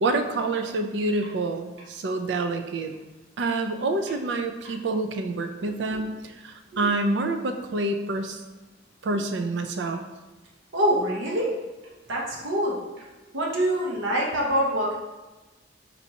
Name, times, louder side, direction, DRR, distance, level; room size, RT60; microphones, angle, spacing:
voice 1, 0.0-2.9 3.4-8.4 9.0-10.0, right 2 dB, 65° right, 7 dB, 0.4 m, -27 dB
voice 2, 10.7-11.5 12.1-12.8 13.3-14.9, equal, 85° right, -2 dB, 0.8 m, -25 dB
4.4 x 4.0 x 2.8 m, 1.1 s
head